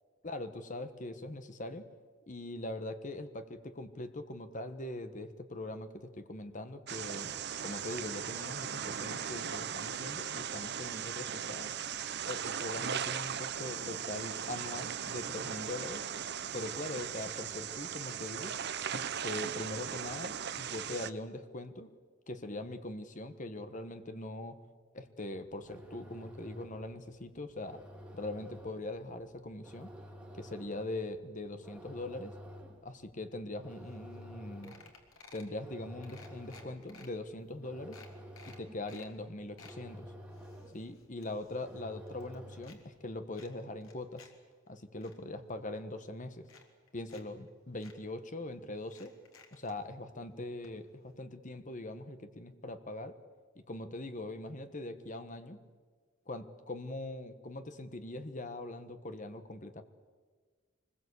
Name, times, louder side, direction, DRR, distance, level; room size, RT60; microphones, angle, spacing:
voice 1, 0.2-1.9 2.3-7.3 7.6-11.7 12.3-16.0 16.5-18.6 18.9-21.9 22.3-24.6 24.9-27.8 28.1-29.9 30.3-32.3 32.8-34.8 35.3-38.0 38.4-40.1 40.7-44.3 44.7-46.5 46.9-49.1 49.5-53.2 53.7-55.6 56.3-59.8, left 2 dB, 40° left, 9 dB, 1.4 m, -42 dB
sound 1, 6.9-21.1, right 8 dB, 55° right, 0.8 m, -38 dB
sound 2, 25.4-43.0, equal, 5° right, 2.5 m, -52 dB
sound 3, 33.9-34.0 34.2-34.4 34.6-35.5 36.0-37.1 37.5-37.6 37.9-39.1 39.4-39.8 40.3-41.8 42.1-42.8 43.3-44.3 44.7-45.1 45.9-46.0 46.4-47.2 47.5-47.6 47.8-48.0 48.8-49.8 50.6-50.7 51.0-51.1, left 4 dB, 85° left, 3.3 m, -56 dB
24.5 x 21.0 x 8.4 m, 1.5 s
head